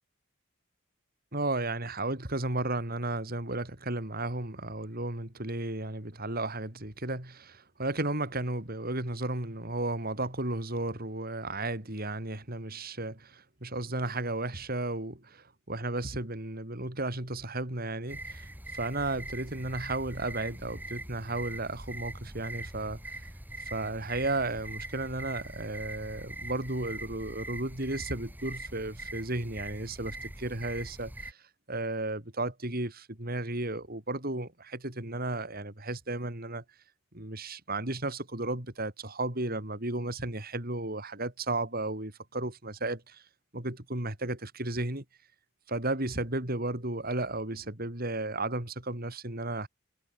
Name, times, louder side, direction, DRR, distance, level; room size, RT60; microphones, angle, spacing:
voice 1, 1.3-18.5 18.7-23.0 23.7-31.4 31.7-36.6 37.1-43.2 43.5-45.0 45.7-49.7, right 2 dB, 45° right, 4.0 m, -34 dB
sound 1, 18.1-31.3, right 1 dB, 10° right, 2.6 m, -42 dB
head